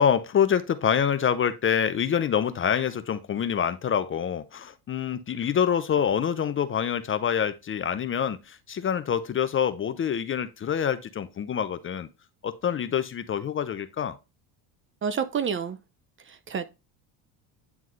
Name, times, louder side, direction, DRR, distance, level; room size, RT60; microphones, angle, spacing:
voice 1, 0.0-12.1 12.4-14.2, left 8 dB, 30° left, 0.6 m, -26 dB
voice 2, 15.0-15.8 16.3-16.7, right 7 dB, 30° right, 0.6 m, -29 dB
9.4 x 3.6 x 3.1 m
supercardioid pair, 105°, 45 cm